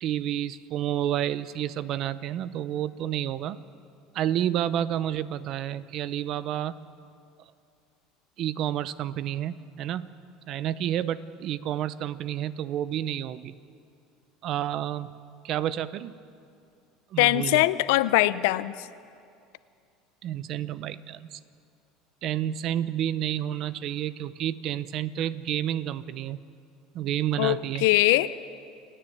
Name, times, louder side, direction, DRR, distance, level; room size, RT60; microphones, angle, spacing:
voice 1, 0.0-3.6 4.1-6.8 8.4-10.1 10.5-13.5 14.4-15.1 15.4-16.1 17.1-17.6 20.2-21.4 22.2-26.4 26.9-27.9, right 11 dB, 50° right, 16 dB, 0.7 m, -30 dB
voice 2, 17.2-18.7 27.4-28.4, left 17 dB, 80° left, 16 dB, 0.6 m, -22 dB
29.0 x 10.0 x 9.3 m, 2.4 s
supercardioid pair, 135°, 0 cm